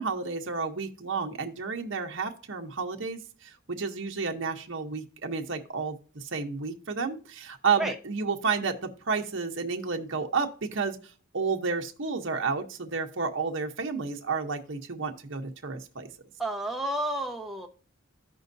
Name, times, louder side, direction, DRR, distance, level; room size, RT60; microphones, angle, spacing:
voice 1, 0.0-3.2 3.7-11.0 11.3-16.1, right 5 dB, 60° right, 3 dB, 0.9 m, -31 dB
voice 2, 16.4-17.7, right 1 dB, ahead, 2 dB, 1.0 m, -31 dB
15.0 x 5.3 x 2.7 m, 0.39 s
head